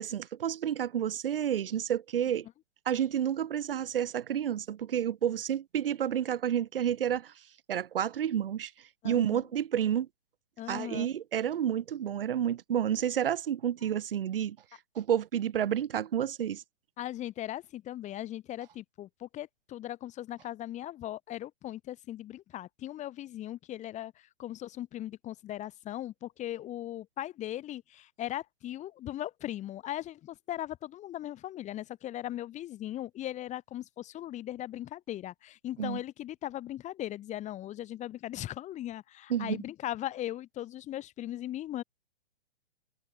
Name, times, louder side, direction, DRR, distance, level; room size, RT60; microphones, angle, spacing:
voice 1, 0.0-2.5 2.9-7.3 7.7-8.7 9.0-10.1 10.7-14.6 14.9-16.6 35.8-36.0 39.3-39.6, right 9 dB, 55° right, 7.9 m, -30 dB
voice 2, 9.0-9.4 10.6-11.1 17.0-41.8, left 13 dB, 20° left, 5.6 m, -38 dB
figure-of-eight pair, 120°, 33 cm